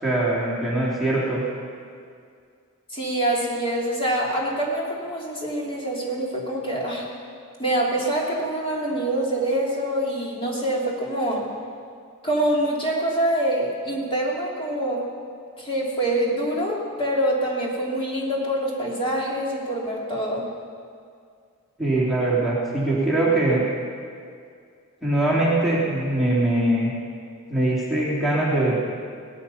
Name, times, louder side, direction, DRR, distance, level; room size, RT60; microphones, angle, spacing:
voice 1, 0.0-1.4 21.8-23.6 25.0-26.9 27.5-28.8, right 1 dB, ahead, -7 dB, 2.9 m, -22 dB
voice 2, 2.9-7.1 7.6-11.4 12.2-15.0 15.6-20.4, right 1 dB, 25° left, -3 dB, 3.0 m, -25 dB
18.5 x 13.0 x 5.7 m, 2.2 s
head